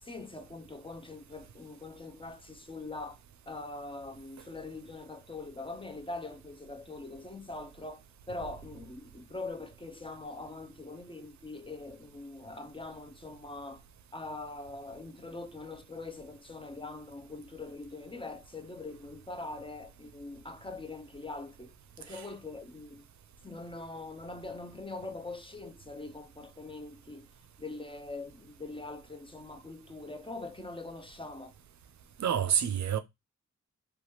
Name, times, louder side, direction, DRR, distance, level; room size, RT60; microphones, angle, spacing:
voice 1, 0.0-3.2 3.5-13.8 14.1-23.1 23.4-27.3 27.6-31.5, left 2 dB, 15° left, 0.5 m, -43 dB
voice 2, 32.2-33.0, right 9 dB, 65° right, 0.5 m, -28 dB
3.0 x 2.3 x 2.7 m
cardioid pair, 50°, 31 cm